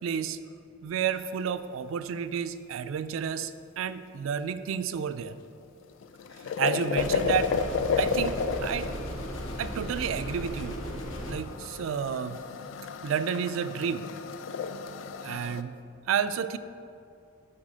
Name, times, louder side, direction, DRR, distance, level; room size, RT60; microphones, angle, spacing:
voice 1, 0.0-0.4 0.8-5.4 6.6-7.5 8.0-8.9 9.6-10.7 11.3-12.4 13.0-14.1 15.2-15.8 16.1-16.6, right 7 dB, 85° right, 13 dB, 0.3 m, -31 dB
sound 1, 5.8-15.6, left 6 dB, 70° left, 0.3 m, -33 dB
sound 2, 7.0-11.4, equal, 90° left, 1.0 m, -36 dB
7.3 x 4.4 x 5.0 m, 2.5 s
head